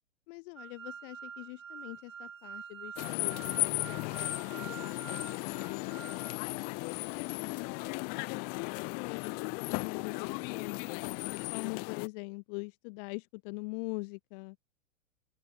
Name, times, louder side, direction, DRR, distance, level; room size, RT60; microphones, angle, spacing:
voice 1, 0.3-6.3 7.0-10.8 11.5-14.6, left 30 dB, 45° left, 1.5 m, -43 dB
sound 1, 0.6-6.4, right 7 dB, 80° right, 2.0 m, -47 dB
sound 2, 3.0-12.1, left 33 dB, 25° left, 0.4 m, -36 dB
open air
figure-of-eight pair, 100°, 38 cm